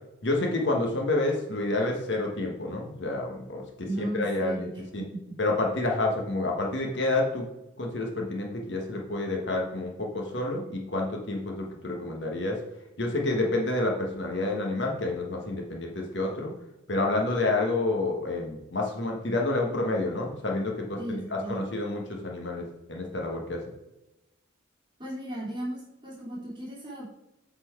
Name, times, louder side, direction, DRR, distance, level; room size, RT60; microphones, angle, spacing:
voice 1, 0.2-5.0 5.4-7.5 7.8-12.6 13.0-16.5 16.9-23.6, left 2 dB, 65° left, 0 dB, 1.4 m, -29 dB
voice 2, 3.9-5.4 21.0-21.6 25.0-27.1, right 1 dB, 25° right, -6 dB, 2.9 m, -36 dB
8.2 x 4.4 x 4.5 m, 0.93 s
head